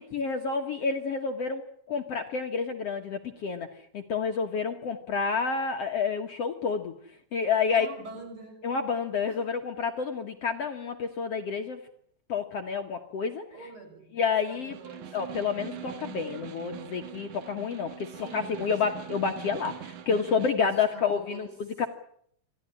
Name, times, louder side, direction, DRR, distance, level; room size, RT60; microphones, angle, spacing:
voice 1, 0.0-1.6 1.9-3.7 3.9-6.9 7.3-7.9 8.6-11.8 12.3-13.4 14.1-14.7 15.1-21.5 21.8-21.9, left 5 dB, 55° left, 4 dB, 1.9 m, -29 dB
voice 2, 7.7-8.6 9.3-9.4 10.9-11.2 13.5-15.3 18.1-19.1 20.5-21.5, right 2 dB, 35° right, 4 dB, 7.2 m, -45 dB
Snare drum, 14.5-20.7, right 10 dB, 65° right, 2.6 m, -43 dB
27.0 x 16.0 x 9.9 m, 0.68 s
omnidirectional pair, 4.3 m